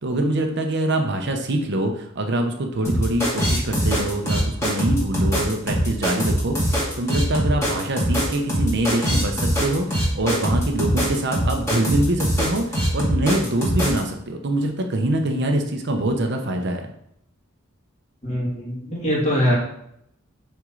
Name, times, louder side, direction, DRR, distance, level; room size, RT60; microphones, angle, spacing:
voice 1, 0.0-16.9, right 1 dB, 55° right, 4 dB, 0.8 m, -24 dB
sound 1, 2.8-14.0, equal, 15° left, 2.0 m, -22 dB
voice 2, 18.2-19.5, equal, 35° left, -5 dB, 2.3 m, -22 dB
6.1 x 4.5 x 3.8 m, 0.75 s
head